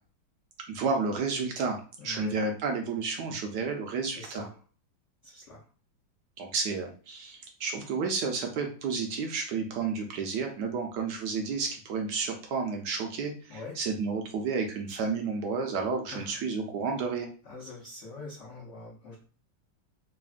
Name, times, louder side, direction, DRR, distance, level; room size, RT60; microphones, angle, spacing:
voice 1, 0.7-4.4 6.4-17.3, right 4 dB, 75° right, 3 dB, 1.0 m, -31 dB
voice 2, 2.0-2.4 4.1-4.6 5.2-5.7 13.5-13.8 16.1-16.4 17.4-19.2, left 2 dB, 80° left, -2 dB, 0.6 m, -44 dB
3.2 x 2.1 x 2.3 m, 0.39 s
omnidirectional pair, 2.0 m